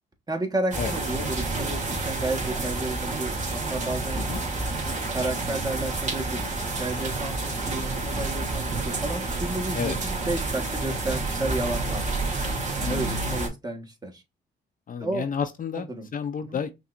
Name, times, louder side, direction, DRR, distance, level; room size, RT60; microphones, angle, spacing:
voice 1, 0.3-4.2 5.1-12.0 12.8-14.2 15.0-15.2 15.7-16.1 16.4-16.6, right 2 dB, 20° right, 1.4 m, -32 dB
sound 1, 0.7-13.5, right 3 dB, 40° right, 2.1 m, -29 dB
voice 2, 12.8-13.1 14.9-16.7, left 7 dB, 45° left, 0.6 m, -30 dB
5.6 x 3.1 x 2.6 m
cardioid pair, 90°, 20 cm